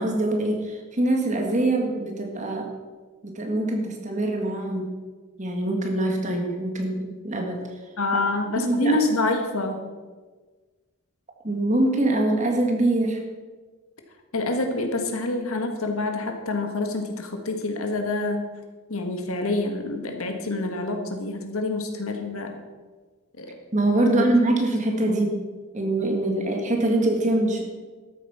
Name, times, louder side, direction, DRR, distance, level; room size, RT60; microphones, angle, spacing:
voice 1, 0.0-2.7 3.2-4.9 5.4-7.6 8.6-9.0 11.4-13.2 23.7-25.3 25.7-27.6, right 1 dB, 35° right, 2 dB, 1.9 m, -24 dB
voice 2, 8.0-9.8 14.3-18.5 18.9-22.6 23.4-23.6 24.0-24.3, left 2 dB, 80° left, 5 dB, 1.7 m, -27 dB
13.0 x 8.6 x 5.8 m, 1.3 s
head